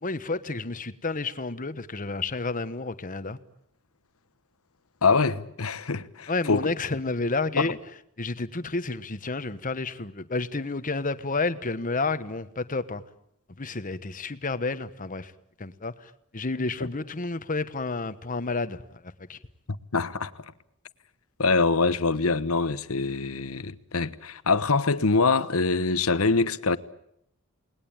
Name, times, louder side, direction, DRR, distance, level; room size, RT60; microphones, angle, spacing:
voice 1, 0.0-3.4 6.3-7.8 8.2-13.0 13.6-15.3 15.6-19.4, left 3 dB, 40° left, 1.3 m, -30 dB
voice 2, 5.0-6.7 7.6-7.7 16.8-16.9 19.9-20.3 21.4-26.8, left 4 dB, 85° left, 1.2 m, -24 dB
29.0 x 20.0 x 8.9 m
head